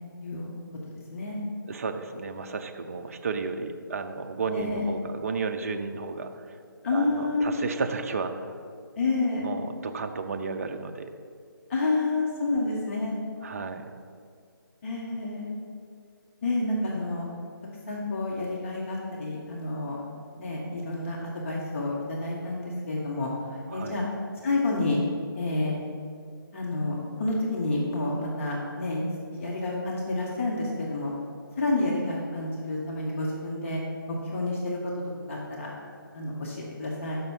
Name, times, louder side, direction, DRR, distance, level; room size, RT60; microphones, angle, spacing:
voice 1, 1.7-6.3 6.9-8.5 9.4-11.1 13.4-13.9 23.7-24.0, right 4 dB, 40° right, 6 dB, 0.5 m, -33 dB
voice 2, 4.5-4.9 6.8-7.6 9.0-9.5 11.7-13.1 14.8-15.5 16.4-17.3 17.9-20.0 20.4-21.2 21.4-24.0 24.4-25.0 25.3-25.7 26.5-29.0 29.3-31.1 31.6-33.8 34.1-34.8 35.3-35.7 36.1-37.2, left 2 dB, 35° left, -3 dB, 1.0 m, -29 dB
5.8 x 5.5 x 5.4 m, 2.2 s
figure-of-eight pair, 150°, 12 cm